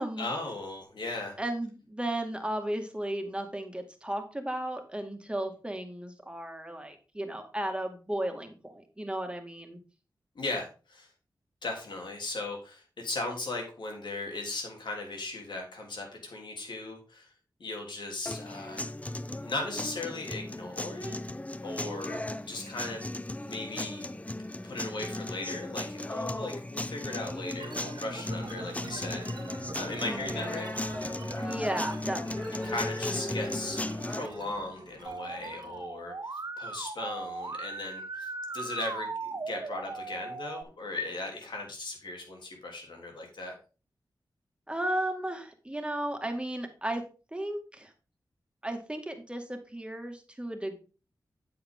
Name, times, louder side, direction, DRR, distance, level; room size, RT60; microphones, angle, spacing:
voice 1, 0.2-1.3 10.3-11.1 11.6-17.3 17.6-18.9 19.4-21.2 21.6-23.1 23.4-24.1 24.6-29.5 29.7-30.7 32.6-43.5, left 2 dB, 80° left, 1 dB, 3.3 m, -37 dB
voice 2, 1.4-9.8 30.0-30.6 31.4-32.8 44.7-47.0 47.3-47.9 48.6-50.8, right 1 dB, 15° right, 5 dB, 2.1 m, -35 dB
sound 1, 18.3-34.3, left 1 dB, 20° left, 0.6 m, -36 dB
sound 2, 27.6-35.9, right 4 dB, 70° right, 1.6 m, -46 dB
Musical instrument, 35.1-40.6, right 3 dB, 45° right, 1.2 m, -38 dB
8.7 x 8.0 x 3.7 m, 0.34 s
cardioid pair, 55°, 8 cm